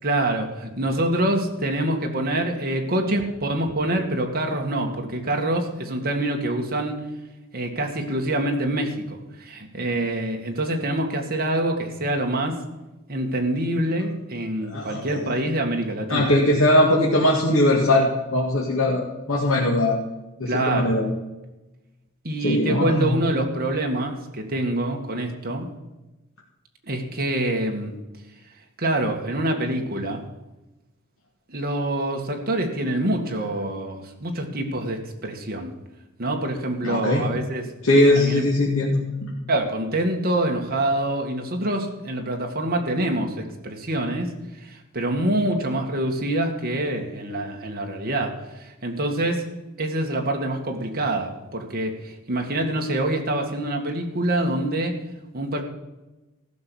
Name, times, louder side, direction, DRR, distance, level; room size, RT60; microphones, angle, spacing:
voice 1, 0.0-7.0 7.5-12.6 13.1-16.3 20.5-20.9 22.2-25.7 26.8-27.9 28.8-30.2 31.5-35.7 36.2-37.7 38.2-38.5 39.5-44.3 44.6-49.4 49.8-55.0 55.3-55.6, right 1 dB, 45° right, 2 dB, 2.0 m, -26 dB
voice 2, 14.7-15.3 16.1-20.0 20.4-21.1 22.4-23.2 36.8-37.3 37.8-39.3, left 1 dB, 70° left, -3 dB, 2.0 m, -20 dB
14.5 x 6.3 x 7.1 m, 1.0 s
head